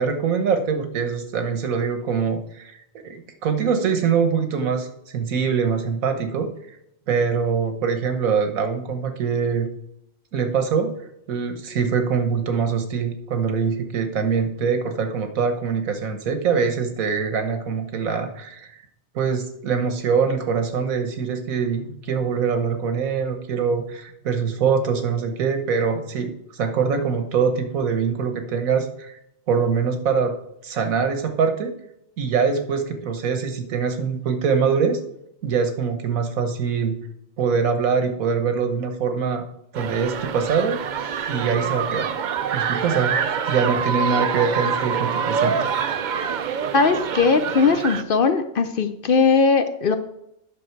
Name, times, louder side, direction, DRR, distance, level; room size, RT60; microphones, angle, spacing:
voice 1, 0.0-6.5 7.1-9.7 10.3-10.9 11.3-18.7 19.1-29.2 29.5-30.4 30.6-31.7 32.2-35.0 35.4-37.0 37.4-39.4 39.7-40.8 41.3-42.1 42.5-43.2 43.5-45.6, right 6 dB, 90° right, 7 dB, 1.5 m, -23 dB
sound 1, 39.7-48.0, right 7 dB, 65° right, 0.4 m, -25 dB
voice 2, 46.7-50.0, left 4 dB, 55° left, 9 dB, 0.6 m, -19 dB
9.2 x 6.1 x 4.5 m, 0.80 s
omnidirectional pair, 1.4 m